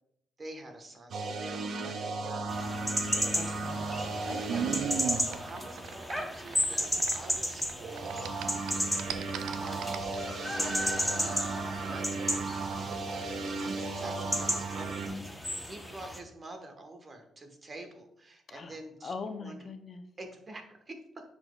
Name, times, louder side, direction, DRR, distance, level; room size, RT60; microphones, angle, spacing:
voice 1, 0.4-3.6 3.9-4.6 5.1-6.9 7.1-9.2 9.5-11.4 11.7-19.1 19.4-19.6 20.2-21.2, right 2 dB, 30° right, 5 dB, 1.2 m, -48 dB
sound 1, 1.1-6.2 7.8-15.1, right 3 dB, 60° right, 0.9 m, -36 dB
sound 2, 2.5-16.2, equal, 5° left, 0.9 m, -34 dB
voice 2, 3.3-5.0 18.5-18.8 19.0-20.0, left 4 dB, 45° left, 7 dB, 0.5 m, -42 dB
sound 3, 3.4-7.7 8.0-10.2, right 8 dB, 85° right, 0.4 m, -36 dB
9.8 x 4.2 x 2.3 m, 0.75 s
cardioid pair, 90°, 0 cm